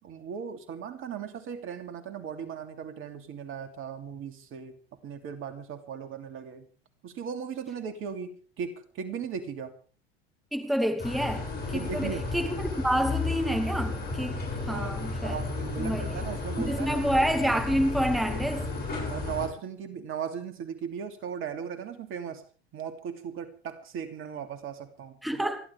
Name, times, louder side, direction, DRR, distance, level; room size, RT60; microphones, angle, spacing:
voice 1, 0.0-4.8 5.0-6.7 7.0-9.7 11.7-12.3 14.7-17.1 19.1-22.4 22.7-25.5, right 7 dB, 40° right, 2.8 m, -37 dB
voice 2, 10.5-15.4 15.8-16.1 16.6-18.7 25.2-25.6, equal, ahead, 1.7 m, -28 dB
sound 1, 11.0-19.5, left 3 dB, 30° left, 7.5 m, -33 dB
28.0 x 12.0 x 3.5 m
hypercardioid pair, 80°, 31 cm